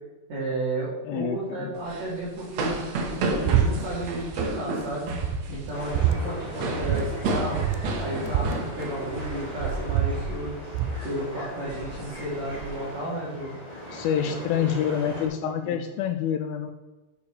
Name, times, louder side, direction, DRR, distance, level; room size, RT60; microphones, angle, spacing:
voice 1, 0.3-2.8 3.4-5.1 5.5-7.6 8.0-10.6 11.0-13.5 14.3-15.0 15.4-15.8, right 1 dB, 45° right, -9 dB, 3.4 m, -33 dB
voice 2, 1.1-1.7 13.9-16.7, left 9 dB, 85° left, 7 dB, 2.1 m, -27 dB
sound 1, 1.8-9.9 10.1-10.4 10.8-11.1 11.6-12.7, right 2 dB, 65° right, 1.8 m, -32 dB
sound 2, 3.5-3.7 4.0-4.5 4.9-5.0 5.2-6.2 6.8-7.0 7.3-7.4 7.6-9.3 9.6-11.0, right 11 dB, 90° right, 2.9 m, -25 dB
sound 3, 5.7-15.3, equal, 10° left, 2.0 m, -40 dB
7.0 x 6.8 x 6.6 m, 1.1 s
omnidirectional pair, 4.8 m